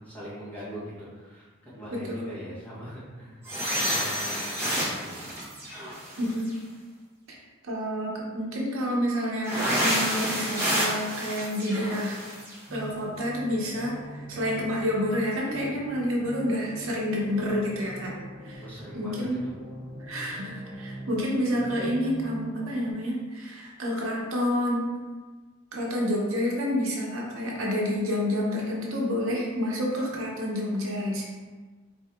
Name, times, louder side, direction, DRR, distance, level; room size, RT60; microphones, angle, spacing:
voice 1, 0.0-5.3 18.6-19.5, equal, 10° left, -10 dB, 1.1 m, -42 dB
sound 1, 3.4-6.5 9.4-12.6, equal, 15° right, 0.9 m, -29 dB
voice 2, 6.2-6.5 7.3-7.4 7.6-12.2 12.7-18.1 18.4-18.6 18.9-19.4 20.0-24.9 25.7-31.3, equal, 85° right, -2 dB, 0.8 m, -29 dB
sound 2, 12.7-22.9, equal, 40° right, 0.9 m, -42 dB
4.1 x 2.8 x 2.3 m, 1.4 s
head